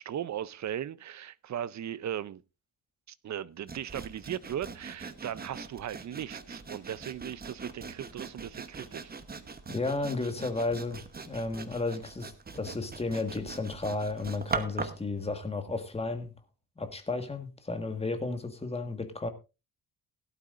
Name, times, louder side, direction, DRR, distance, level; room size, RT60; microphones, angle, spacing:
voice 1, 0.0-2.4 3.2-9.1, right 10 dB, 45° right, 0.6 m, -37 dB
Sawing, 3.7-15.1, right 4 dB, 25° right, 1.0 m, -41 dB
voice 2, 9.7-16.3 16.8-19.3, left 3 dB, 15° left, 1.6 m, -33 dB
17.0 x 12.0 x 2.5 m
wide cardioid pair, 150°, 40 cm